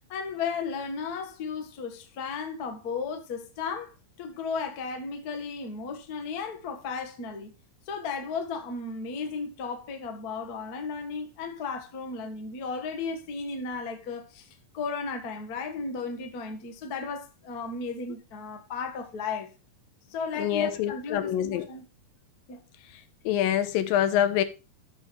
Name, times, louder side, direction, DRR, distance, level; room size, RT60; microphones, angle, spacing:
voice 1, 0.1-7.5 7.9-14.5 14.7-19.5 20.1-21.8 22.5-22.6, left 5 dB, 45° left, 1.2 m, -34 dB
voice 2, 20.4-21.7 23.3-24.4, left 10 dB, 85° left, 2.6 m, -25 dB
14.0 x 5.9 x 3.2 m
omnidirectional pair, 4.1 m